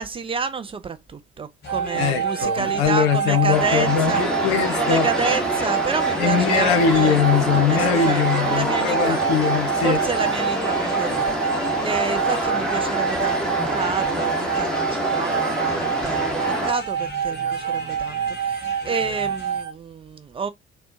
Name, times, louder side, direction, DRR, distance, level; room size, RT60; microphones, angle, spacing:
voice 1, 0.0-4.2 4.8-7.2 7.7-9.2 9.8-11.4 11.8-20.5, right 5 dB, 20° right, 0.3 m, -29 dB
sound 1, 1.6-19.6, left 3 dB, 30° left, 1.1 m, -39 dB
sound 2, 1.7-19.7, right 8 dB, 50° right, 0.7 m, -27 dB
voice 2, 1.9-5.4 6.2-10.0, left 7 dB, 65° left, 0.7 m, -21 dB
sound 3, 3.5-16.7, equal, ahead, 1.2 m, -26 dB
4.2 x 2.1 x 2.6 m
figure-of-eight pair, 50°, 32 cm